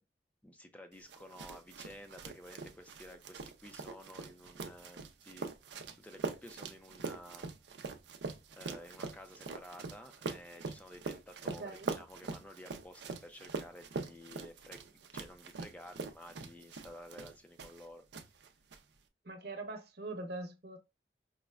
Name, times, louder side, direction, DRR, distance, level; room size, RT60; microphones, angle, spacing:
voice 1, 0.4-5.5 6.0-7.8 8.5-18.0, left 1 dB, 10° left, 0.4 m, -52 dB
sound 1, 1.1-17.9 18.1-18.8, right 4 dB, 80° right, 0.5 m, -43 dB
voice 2, 11.4-11.9 19.2-20.8, right 2 dB, 60° right, 0.8 m, -43 dB
4.9 x 2.1 x 2.3 m
head